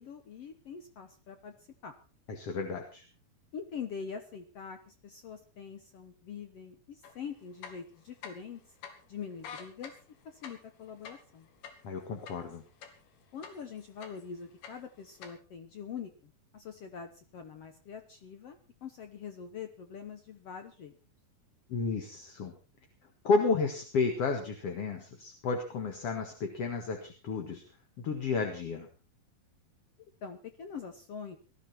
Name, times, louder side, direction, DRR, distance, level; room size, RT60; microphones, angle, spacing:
voice 1, 0.0-1.5 1.8-1.9 3.5-8.6 9.1-10.0 10.2-11.5 13.3-21.0 30.2-31.4, left 6 dB, 70° left, 8 dB, 1.4 m, -44 dB
voice 2, 2.3-3.0 11.8-12.6 21.7-22.5 23.2-27.6 28.0-28.9, left 4 dB, 50° left, 4 dB, 2.3 m, -32 dB
sound 1, 7.0-7.1 7.5-8.6 8.8-8.9 9.3-13.1 13.4-14.3 14.6-15.3, left 7 dB, 90° left, 4.1 m, -46 dB
19.0 x 13.5 x 4.4 m, 0.35 s
omnidirectional pair, 4.4 m